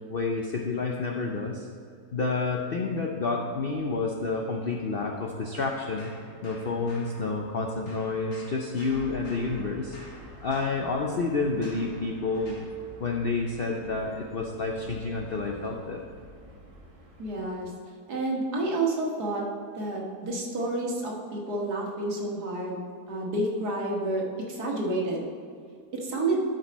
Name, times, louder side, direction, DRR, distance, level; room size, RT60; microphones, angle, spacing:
voice 1, 0.1-1.7 2.1-6.1 6.4-10.0 10.4-12.6 13.0-16.0, left 3 dB, 60° left, 0 dB, 0.6 m, -29 dB
sound 1, 5.5-7.6 7.9-12.8, left 1 dB, 85° left, 2.3 m, -50 dB
sound 2, 8.9-17.6, equal, 25° right, 1.2 m, -48 dB
voice 2, 17.2-17.7 18.1-19.5 19.8-22.8 23.1-25.3 25.9-26.4, right 2 dB, 70° right, -1 dB, 2.0 m, -29 dB
12.5 x 5.4 x 4.1 m, 2.3 s
omnidirectional pair, 1.8 m